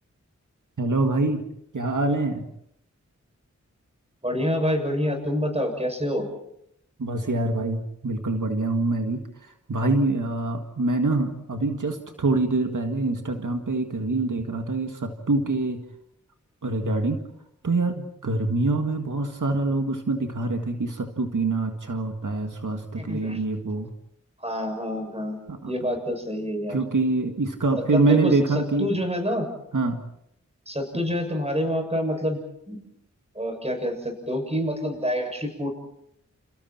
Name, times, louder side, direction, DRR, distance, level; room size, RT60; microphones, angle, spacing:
voice 1, 0.8-1.4 1.7-2.4 7.0-9.2 9.7-15.8 16.6-17.2 17.6-23.9 25.5-25.7 26.7-28.9 29.7-30.0, right 2 dB, 90° right, 5 dB, 1.9 m, -25 dB
voice 2, 4.2-6.3 23.0-23.4 24.4-25.4 25.7-26.8 27.9-29.5 30.7-32.4 32.7-32.8 33.4-35.7, equal, 20° right, 4 dB, 6.9 m, -27 dB
29.5 x 29.5 x 4.4 m, 0.76 s
wide cardioid pair, 50°, 30 cm